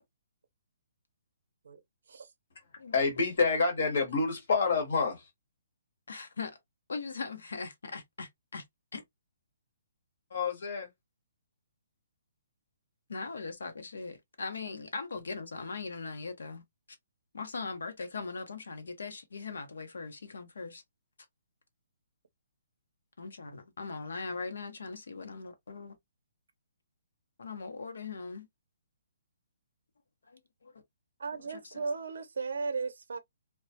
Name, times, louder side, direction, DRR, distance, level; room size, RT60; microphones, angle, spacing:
voice 1, 2.9-5.2 10.3-10.9, left 4 dB, 50° left, 1.1 m, -28 dB
voice 2, 6.1-6.6 6.9-8.6 8.9-9.0 13.1-16.6 17.3-20.8 23.2-26.0 27.4-28.5 30.2-30.8 31.3-31.8, left 4 dB, 90° left, 0.8 m, -40 dB
voice 3, 31.2-33.2, right 4 dB, 65° right, 0.5 m, -35 dB
2.2 x 2.1 x 2.7 m
hypercardioid pair, 180°, 0 cm